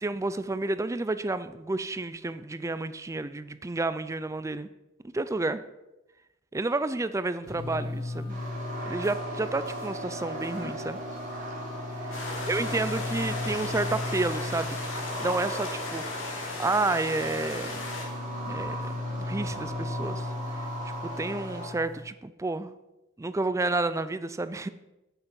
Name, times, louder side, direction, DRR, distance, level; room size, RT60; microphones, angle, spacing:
voice 1, 0.0-4.7 5.1-5.6 6.5-8.4 8.9-11.0 12.5-16.0 16.6-17.9 18.5-18.8 19.1-20.3 21.0-22.7 23.2-24.7, right 2 dB, 15° right, 14 dB, 0.4 m, -30 dB
sound 1, 7.4-22.0, left 2 dB, 90° left, 2.8 m, -37 dB
sound 2, 8.3-21.7, right 1 dB, 40° right, 2.6 m, -38 dB
sound 3, 12.1-18.0, left 2 dB, 65° left, 2.8 m, -37 dB
8.9 x 8.0 x 5.9 m, 0.98 s
head